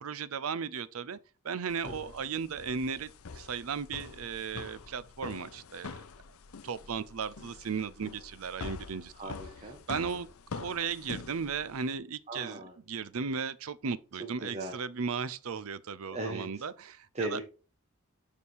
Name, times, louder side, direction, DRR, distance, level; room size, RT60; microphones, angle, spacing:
voice 1, 0.0-1.2 1.4-5.9 6.6-9.1 9.9-10.3 10.6-12.6 12.9-17.4, right 6 dB, 70° right, 0.5 m, -36 dB
sound 1, 1.7-11.9, left 4 dB, 75° left, 0.7 m, -45 dB
voice 2, 9.1-10.2 12.3-12.7 14.1-14.8 16.1-16.6 17.1-17.4, right 2 dB, 30° right, 1.3 m, -38 dB
7.0 x 5.2 x 4.5 m
head